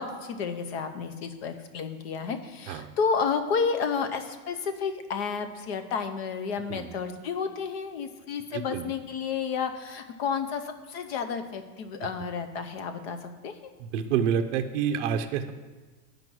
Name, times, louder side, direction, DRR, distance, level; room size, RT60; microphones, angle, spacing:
voice 1, 0.0-13.7, left 5 dB, 40° left, 8 dB, 0.7 m, -31 dB
voice 2, 8.5-8.9 13.8-15.5, right 8 dB, 50° right, 7 dB, 0.6 m, -28 dB
9.3 x 5.2 x 6.1 m, 1.3 s
supercardioid pair, 175°, 48 cm